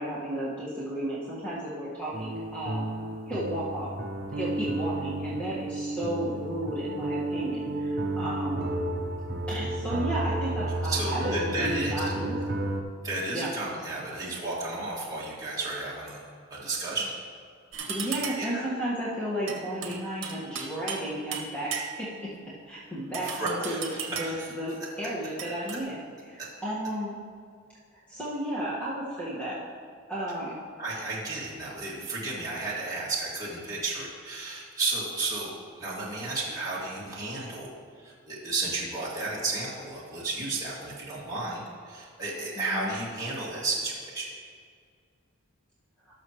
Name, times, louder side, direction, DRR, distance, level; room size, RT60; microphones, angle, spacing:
voice 1, 0.0-2.9 3.3-3.9 4.3-8.7 9.5-12.6 13.3-13.5 17.9-22.3 22.7-26.0 26.2-27.1 27.9-29.6 30.1-30.6 42.6-42.9, right 1 dB, 5° left, -10 dB, 1.6 m, -33 dB
sound 1, 2.1-12.8, right 1 dB, 45° right, 0.7 m, -32 dB
voice 2, 10.8-12.1 13.0-16.2 16.5-17.1 18.0-18.6 23.2-24.5 26.4-26.5 30.8-35.5 35.8-37.7 38.0-44.3, right 3 dB, 15° right, -8 dB, 2.2 m, -33 dB
sound 2, 17.7-18.6 19.5-21.1 21.3-22.2 23.1-24.5 25.4-25.8, right 7 dB, 60° right, 1.3 m, -36 dB
19.0 x 6.4 x 3.1 m, 2.2 s
head